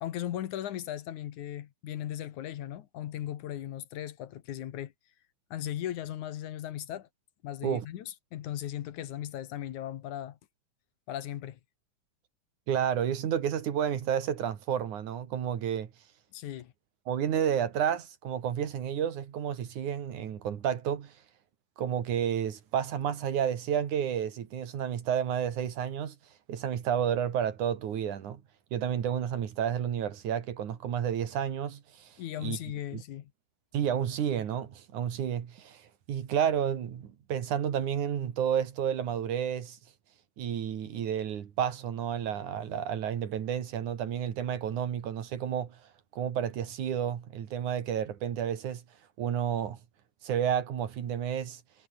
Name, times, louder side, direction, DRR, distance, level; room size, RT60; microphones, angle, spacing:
voice 1, 0.0-4.9 5.5-7.1 7.4-10.4 11.1-11.6 16.3-16.7 32.2-33.3, left 12 dB, 70° left, 2.6 m, -37 dB
voice 2, 12.7-15.9 17.1-21.1 21.8-26.2 26.5-28.4 28.7-32.6 32.9-33.0 33.7-35.8 36.1-39.8 40.4-45.7 46.1-48.8 49.2-49.8 50.2-51.6, right 9 dB, 70° right, 3.4 m, -31 dB
omnidirectional pair, 3.7 m